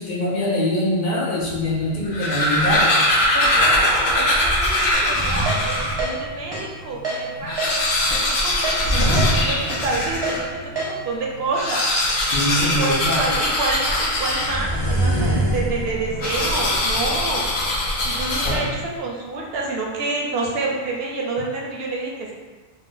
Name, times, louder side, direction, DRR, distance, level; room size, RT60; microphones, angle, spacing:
voice 1, 0.0-3.0 12.3-13.3 18.4-18.7, left 1 dB, 55° left, -5 dB, 0.7 m, -23 dB
sound 1, 1.4-2.4 4.3-6.6 8.8-11.0 14.3-19.0, right 1 dB, 20° left, 0.5 m, -27 dB
sound 2, 1.9-6.1 6.6-6.7 6.9-7.0 7.4-10.5 11.4-14.9 16.2-18.9, left 1 dB, 85° left, 0.9 m, -22 dB
voice 2, 3.3-7.8 8.1-11.9 12.6-17.5 18.0-22.3, right 3 dB, 75° right, -1 dB, 0.8 m, -28 dB
Keyboard (musical), 4.9-5.1 5.5-5.6 6.0-6.1 6.5-6.6 7.0-7.2 7.6-7.7 8.1-8.2 8.6-8.8 9.2-9.3 9.7-9.8 10.2-10.4 10.8-10.9, right 2 dB, 30° right, 0.7 m, -27 dB
2.5 x 2.1 x 3.7 m, 1.3 s
omnidirectional pair, 1.1 m